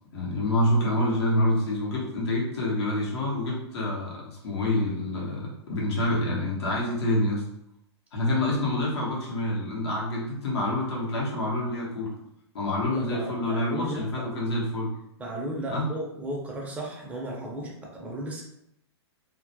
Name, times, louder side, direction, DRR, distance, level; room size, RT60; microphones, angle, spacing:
voice 1, 0.1-7.4 8.1-12.1 12.5-14.9 15.7-15.9, left 1 dB, 65° left, -4 dB, 0.9 m, -27 dB
voice 2, 12.8-14.2 15.2-18.4, right 1 dB, 10° right, -2 dB, 0.5 m, -35 dB
2.2 x 2.0 x 2.7 m, 0.78 s
hypercardioid pair, 125°, 14 cm